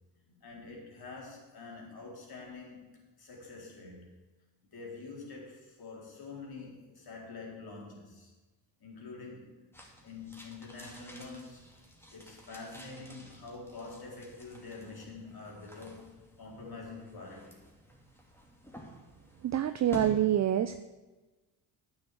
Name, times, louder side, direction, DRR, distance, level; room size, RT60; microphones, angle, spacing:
voice 1, 0.4-4.1 4.7-8.3 8.8-9.6 10.0-11.6 12.1-16.1 16.4-17.6, left 3 dB, 55° left, -2 dB, 3.9 m, -46 dB
sound 1, 9.7-20.1, equal, 5° left, 2.7 m, -50 dB
voice 2, 19.5-20.8, right 11 dB, 40° right, 11 dB, 0.5 m, -26 dB
9.3 x 6.6 x 8.3 m, 1.2 s
supercardioid pair, 70°, 45 cm